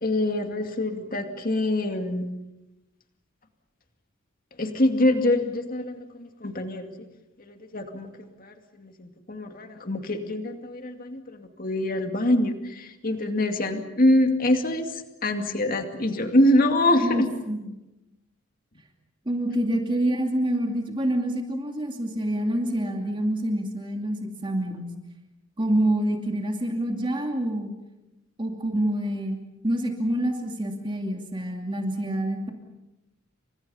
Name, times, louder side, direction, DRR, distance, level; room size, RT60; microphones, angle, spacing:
voice 1, 0.0-2.3 4.6-6.9 7.4-8.1 8.4-17.3, left 1 dB, 40° left, 5 dB, 2.4 m, -25 dB
voice 2, 17.0-17.7 19.3-24.9 25.6-27.7 28.4-29.4 29.6-32.5, right 1 dB, 20° right, 2 dB, 2.5 m, -27 dB
29.0 x 26.5 x 5.6 m, 0.95 s
head